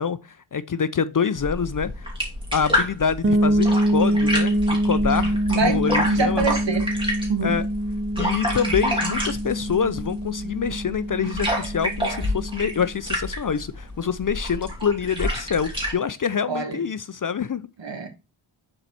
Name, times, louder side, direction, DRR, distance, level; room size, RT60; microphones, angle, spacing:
voice 1, 0.0-2.1 2.5-6.4 7.4-7.6 8.2-17.7, left 6 dB, 45° left, 0.5 m, -26 dB
sound 1, 1.4-15.9, equal, 10° right, 2.8 m, -29 dB
sound 2, 3.2-12.9, right 1 dB, 25° right, 0.5 m, -25 dB
voice 2, 5.5-6.9 7.3-7.6 16.5-16.8 17.8-18.1, right 4 dB, 60° right, 1.6 m, -25 dB
6.8 x 4.5 x 4.2 m
wide cardioid pair, 90°, 49 cm